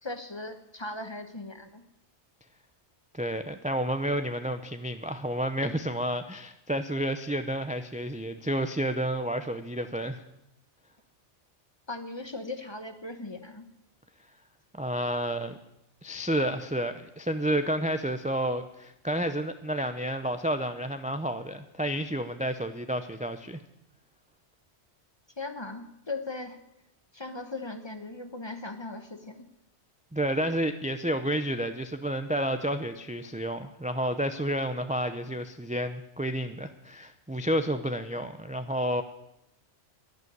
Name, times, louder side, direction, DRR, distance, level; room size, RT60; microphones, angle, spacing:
voice 1, 0.0-1.8 11.9-13.6 25.4-26.6 27.1-29.5, left 2 dB, 25° left, 8 dB, 1.1 m, -38 dB
voice 2, 3.1-10.2 14.8-15.6 16.0-23.6 30.1-39.0, right 1 dB, 10° right, 9 dB, 0.4 m, -30 dB
11.0 x 11.0 x 9.4 m, 0.85 s
omnidirectional pair, 1.2 m